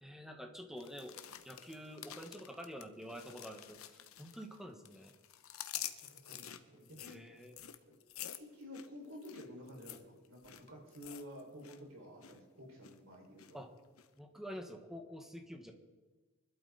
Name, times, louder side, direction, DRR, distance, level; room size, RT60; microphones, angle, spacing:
voice 1, 0.0-1.2 1.4-5.1 7.0-7.6 13.5-13.7 14.2-15.7, equal, ahead, 4 dB, 1.6 m, -48 dB
sound 1, 0.8-4.6 4.8-11.8 12.0-12.4 12.8-13.5 14.0-14.1, left 11 dB, 85° left, 0.9 m, -48 dB
voice 2, 6.0-7.2 7.8-7.9 8.3-13.6, left 1 dB, 70° right, -1 dB, 5.6 m, -51 dB
24.5 x 12.0 x 4.2 m, 1.3 s
head